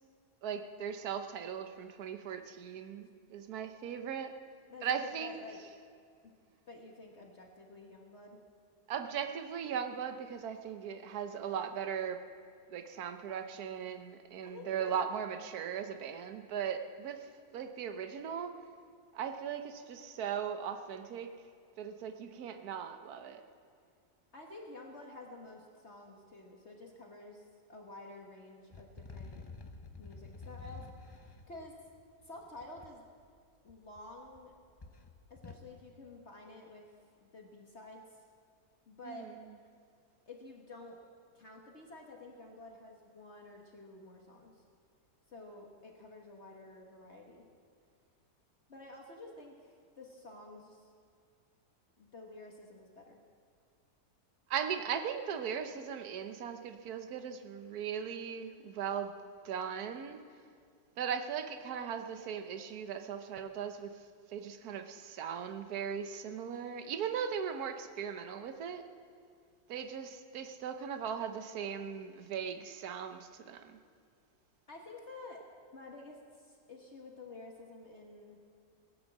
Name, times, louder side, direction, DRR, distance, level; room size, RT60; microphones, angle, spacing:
voice 1, 0.4-4.3 4.8-5.4 8.9-12.2 12.7-18.5 19.1-21.3 21.8-23.4 39.0-39.3 54.5-59.1 59.4-60.2 61.0-63.9 64.3-68.8 69.7-73.8, right 7 dB, 70° right, 7 dB, 1.4 m, -38 dB
voice 2, 4.7-5.6 6.2-6.3 6.7-8.4 14.4-15.0 24.3-29.5 30.0-30.9 31.2-31.8 32.2-33.0 33.6-34.5 35.3-36.9 37.2-38.2 38.9-39.3 40.3-41.0 41.3-44.6 45.3-47.5 48.7-50.9 52.0-53.2 74.7-75.4 75.7-78.4, left 2 dB, 45° left, 0 dB, 1.7 m, -50 dB
sound 1, 28.7-32.9 33.7-34.4 34.7-35.7, left 4 dB, 30° left, 0.4 m, -49 dB
18.5 x 10.5 x 7.4 m, 2.2 s
omnidirectional pair, 1.7 m